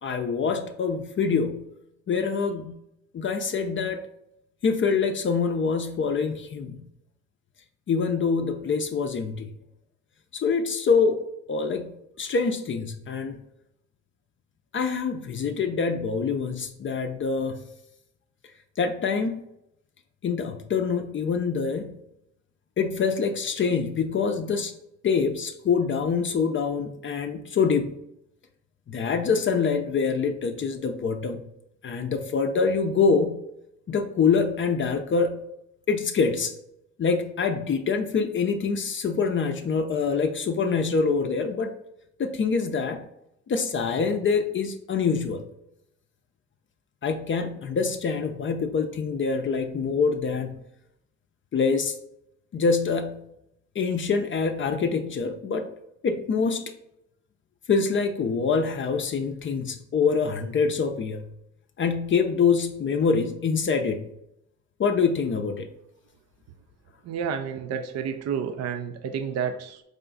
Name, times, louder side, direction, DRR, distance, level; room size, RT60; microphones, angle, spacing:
voice 1, 0.0-1.7 2.1-2.8 3.1-4.0 4.6-6.9 7.9-9.5 10.3-13.4 14.7-17.6 18.8-19.4 20.2-22.0 22.8-24.7 25.0-28.0 28.9-31.4 31.8-33.5 33.9-35.5 35.9-36.5 37.0-41.7 42.2-43.1 43.5-45.5 47.0-50.6 51.5-52.0 52.5-53.3 53.8-55.7 56.0-56.6 57.7-61.3 61.8-64.0 64.8-65.7, left 5 dB, 40° left, 5 dB, 0.5 m, -25 dB
voice 2, 67.0-69.8, right 7 dB, 60° right, 8 dB, 0.5 m, -30 dB
4.9 x 2.3 x 3.8 m, 0.80 s
cardioid pair, 90°, 30 cm